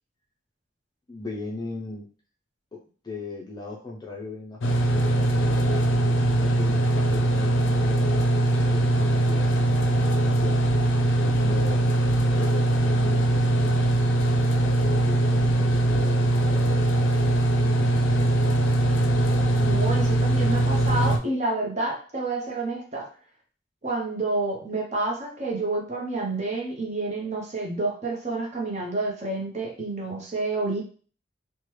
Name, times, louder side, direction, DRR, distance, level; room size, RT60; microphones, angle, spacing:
voice 1, 1.1-2.1 2.7-10.7 11.1-11.8 12.4-14.1 14.8-16.8 17.6-18.6, left 3 dB, 20° left, -1 dB, 0.4 m, -39 dB
sound 1, 4.6-21.2, right 1 dB, 85° left, 0.4 m, -21 dB
voice 2, 19.5-23.1 23.8-30.8, right 2 dB, 35° right, -1 dB, 0.7 m, -29 dB
3.1 x 2.1 x 3.1 m, 0.41 s
head